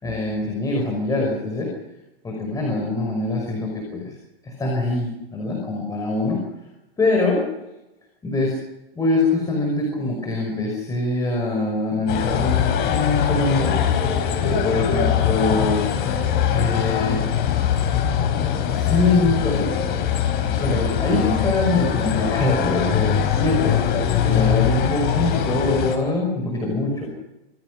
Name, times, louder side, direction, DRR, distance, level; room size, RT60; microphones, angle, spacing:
voice 1, 0.0-1.7 2.2-4.2 4.4-6.4 7.0-7.4 8.2-8.5 9.0-13.8 14.5-15.8 16.5-17.2 18.7-19.7 20.4-27.1, left 2 dB, 10° left, 0 dB, 5.6 m, -23 dB
sound 1, 12.1-26.0, left 8 dB, 35° left, 4.6 m, -22 dB
26.5 x 17.5 x 6.4 m, 0.96 s
hypercardioid pair, 140°, 30 cm